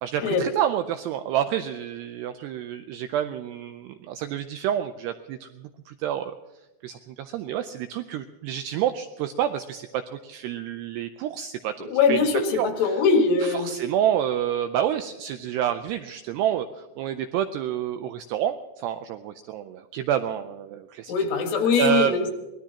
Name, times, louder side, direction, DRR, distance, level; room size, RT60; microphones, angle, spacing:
voice 1, 0.0-6.4 6.8-12.3 12.5-13.0 13.4-21.1 21.8-22.1, right 10 dB, 90° right, 9 dB, 2.3 m, -28 dB
voice 2, 11.8-13.7 21.1-22.5, left 4 dB, 80° left, 3 dB, 4.3 m, -22 dB
24.5 x 19.5 x 2.9 m, 1.1 s
omnidirectional pair, 5.5 m